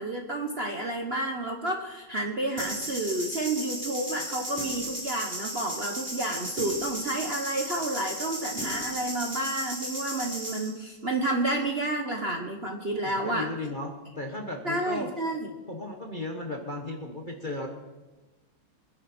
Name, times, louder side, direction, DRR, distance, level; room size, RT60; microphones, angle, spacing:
voice 1, 0.0-13.5 14.6-15.5, right 2 dB, 35° right, 2 dB, 1.1 m, -30 dB
sound 1, 2.6-10.7, equal, 5° right, 3.9 m, -35 dB
voice 2, 13.2-15.1 15.7-17.7, left 2 dB, 30° left, 1 dB, 1.2 m, -35 dB
25.0 x 10.5 x 4.4 m, 1.2 s
omnidirectional pair, 2.3 m